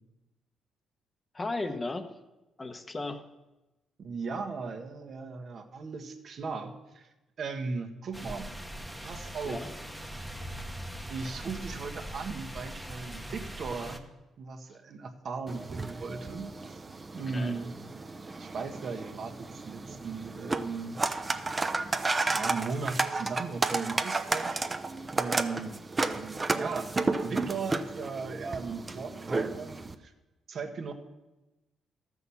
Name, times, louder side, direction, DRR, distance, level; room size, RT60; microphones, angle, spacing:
voice 1, 1.3-2.1 2.6-3.3 9.4-9.7 17.1-17.6, left 2 dB, 25° left, 7 dB, 1.0 m, -35 dB
voice 2, 4.0-7.1 7.4-8.5 9.0-9.6 11.1-14.0 14.4-16.8 17.1-17.7 18.4-21.0 22.3-24.7 25.1-26.9 27.2-30.1 30.5-30.9, right 4 dB, 55° right, 4 dB, 1.3 m, -37 dB
sound 1, 8.1-14.0, right 1 dB, ahead, 1.1 m, -41 dB
sound 2, 15.5-29.9, right 3 dB, 25° right, 0.7 m, -32 dB
13.0 x 6.2 x 7.1 m, 1.0 s
cardioid pair, 90°, 0 cm